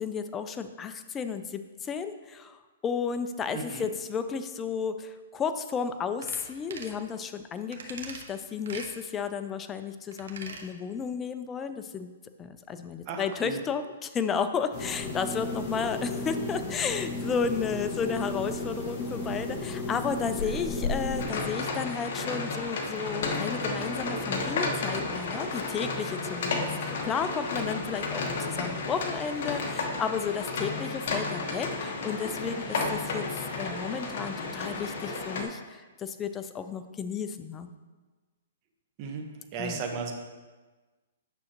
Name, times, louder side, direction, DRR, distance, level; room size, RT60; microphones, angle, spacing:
voice 1, 0.0-12.1 12.4-37.7 39.6-39.8, left 6 dB, 15° left, 9 dB, 0.4 m, -33 dB
voice 2, 3.5-3.9 13.1-13.6 39.0-39.3 39.5-40.1, right 5 dB, 35° right, 3 dB, 1.0 m, -35 dB
sound 1, 6.2-6.4 6.7-7.0 7.7-8.3 8.7-8.9 10.1-10.7 11.0-11.1, right 4 dB, 75° right, 1.0 m, -41 dB
sound 2, 14.7-21.2, left 2 dB, 30° left, 1.6 m, -33 dB
sound 3, 21.2-35.4, left 3 dB, 55° left, 1.1 m, -32 dB
8.8 x 6.2 x 2.9 m, 1.3 s
hypercardioid pair, 150°, 0 cm